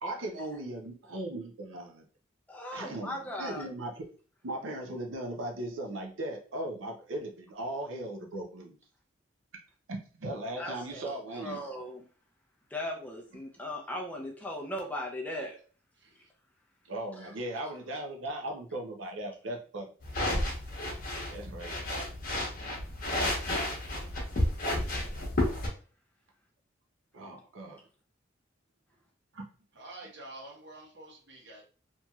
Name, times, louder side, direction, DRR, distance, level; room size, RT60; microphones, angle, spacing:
voice 1, 0.0-2.0 2.7-4.1 4.4-8.8 9.9-11.6 16.9-19.9 21.3-21.8 27.1-27.8 29.3-29.5, right 1 dB, 85° right, 1 dB, 0.6 m, -38 dB
voice 2, 2.5-3.7 10.5-12.1 12.7-15.6 17.2-17.3 17.6-17.7, left 1 dB, 10° left, 0 dB, 0.4 m, -38 dB
sound 1, 20.0-25.7, left 1 dB, 45° left, 0.9 m, -31 dB
voice 3, 29.8-31.6, right 2 dB, 65° right, -1 dB, 1.0 m, -47 dB
2.9 x 2.6 x 2.3 m, 0.40 s
head